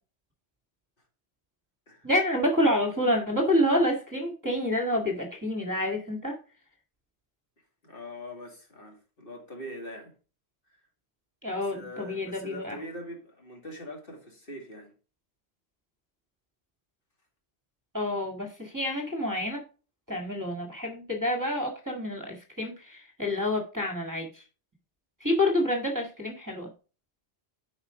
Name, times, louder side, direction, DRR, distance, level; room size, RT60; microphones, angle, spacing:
voice 1, 2.0-6.4 11.4-12.8 17.9-19.6 20.1-24.4 25.2-26.7, left 1 dB, 15° right, 1.7 m, -28 dB
voice 2, 7.8-10.1 11.7-14.9, equal, 50° left, 2.5 m, -42 dB
8.7 x 5.0 x 4.8 m
omnidirectional pair, 1.2 m